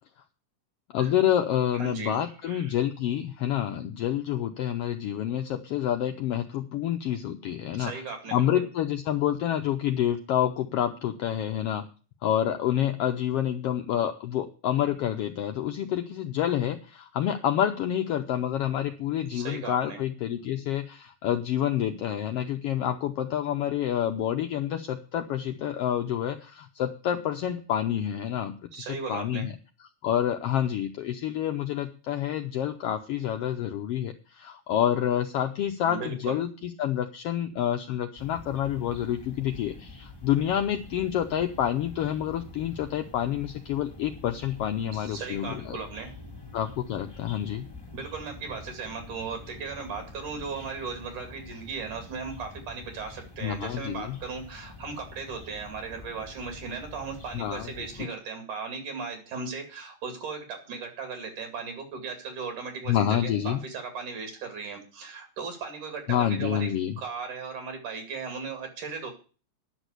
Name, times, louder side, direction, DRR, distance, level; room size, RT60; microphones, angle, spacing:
voice 1, 0.9-8.0 8.3-11.8 12.2-29.5 30.0-45.8 46.5-47.7 53.4-54.2 57.3-57.7 58.0-58.1 62.9-63.6 66.1-66.9, left 10 dB, 85° left, 6 dB, 1.3 m, -28 dB
voice 2, 1.7-2.7 7.7-8.7 19.3-20.0 28.7-29.5 35.8-36.4 44.9-46.1 47.9-69.1, right 5 dB, 70° right, 4 dB, 3.8 m, -37 dB
sound 1, 38.2-58.0, left 3 dB, 10° left, 1.2 m, -46 dB
10.5 x 6.3 x 8.1 m, 0.37 s
omnidirectional pair, 3.6 m